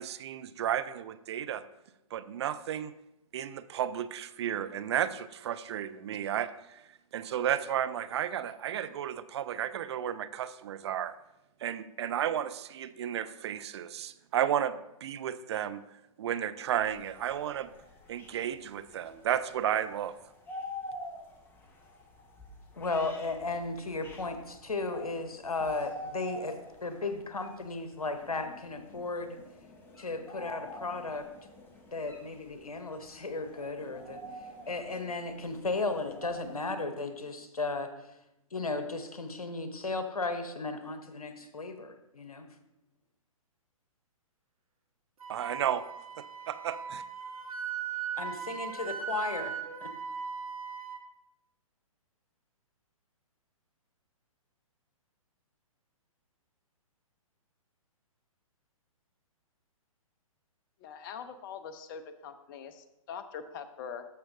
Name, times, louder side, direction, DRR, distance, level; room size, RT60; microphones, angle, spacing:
voice 1, 0.0-1.6 2.1-2.9 3.3-6.8 7.1-11.1 11.6-15.8 16.2-17.7 18.1-20.2 45.3-45.8 46.2-47.0, right 10 dB, 50° right, 14 dB, 0.4 m, -33 dB
sound 1, 16.7-36.6, left 1 dB, 10° left, 0.9 m, -47 dB
voice 2, 22.8-29.4 30.0-31.3 31.9-34.2 34.7-37.9 38.5-42.5 48.2-49.5 49.8-49.9, left 3 dB, 90° left, 8 dB, 1.0 m, -35 dB
Wind instrument woodwind instrument, 45.2-51.0, right 7 dB, 75° right, 1.3 m, -38 dB
voice 3, 60.8-64.1, left 7 dB, 35° left, 10 dB, 0.7 m, -43 dB
13.5 x 5.7 x 2.7 m, 0.91 s
figure-of-eight pair, 125°, 18 cm